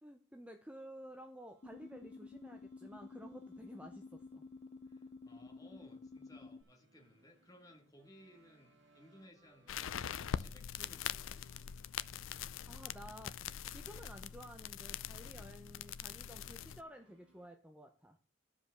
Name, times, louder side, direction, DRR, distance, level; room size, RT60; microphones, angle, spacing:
voice 1, 0.0-4.5 12.7-18.2, equal, 5° right, 0.6 m, -53 dB
sound 1, 0.9-17.5, right 1 dB, 60° right, 1.8 m, -71 dB
sound 2, 1.6-6.6, left 3 dB, 35° left, 0.6 m, -52 dB
voice 2, 4.8-10.0 10.3-11.4, equal, 20° left, 1.9 m, -61 dB
sound 3, 9.7-16.8, left 8 dB, 80° left, 0.4 m, -43 dB
11.5 x 5.1 x 6.7 m
head